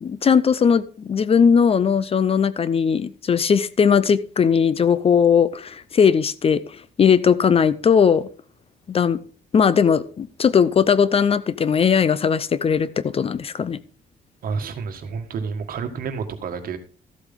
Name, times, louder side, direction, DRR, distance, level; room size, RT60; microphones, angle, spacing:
voice 1, 0.0-6.6 7.0-8.3 8.9-9.2 9.5-13.8, left 6 dB, 35° left, 0.6 m, -18 dB
voice 2, 14.4-16.8, right 5 dB, 60° right, 1.8 m, -29 dB
14.0 x 8.0 x 3.7 m
cardioid pair, 110°, 16 cm